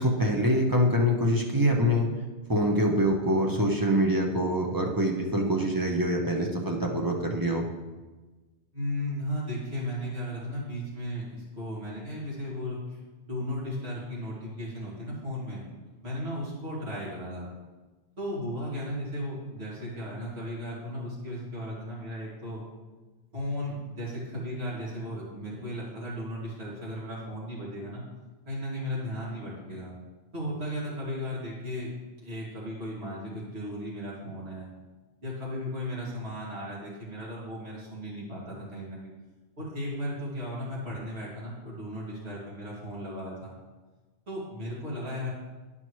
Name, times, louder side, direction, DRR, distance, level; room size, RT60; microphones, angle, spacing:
voice 1, 0.0-2.1 2.5-7.7, equal, 20° right, 0 dB, 0.8 m, -25 dB
voice 2, 8.7-15.7 15.9-17.5 18.2-22.6 23.3-28.0 28.4-29.9 30.3-31.9 32.2-34.7 35.2-39.1 39.6-43.5 44.3-45.3, equal, 60° right, -7 dB, 2.7 m, -35 dB
11.5 x 5.4 x 3.2 m, 1.2 s
omnidirectional pair, 1.2 m